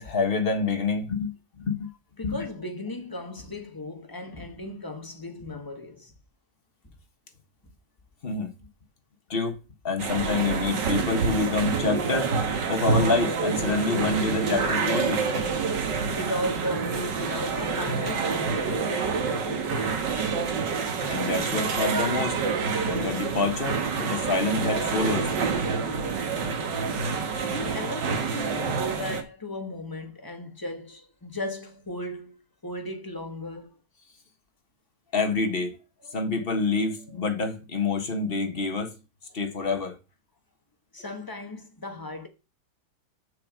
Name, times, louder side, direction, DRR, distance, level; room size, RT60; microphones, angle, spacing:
voice 1, 0.0-1.9 2.2-2.4 8.2-8.5 9.3-9.5 9.8-12.3 12.7-15.2 21.1-22.4 22.8-25.3 35.1-35.8 36.1-39.0 39.3-40.0, left 4 dB, 35° left, 1.6 m, -27 dB
voice 2, 2.2-6.1 16.1-20.1 27.4-33.8 40.9-42.3, left 1 dB, 15° left, 1.3 m, -36 dB
sound 1, 10.0-29.2, right 5 dB, 80° right, 2.0 m, -27 dB
6.9 x 6.8 x 5.0 m
omnidirectional pair, 1.9 m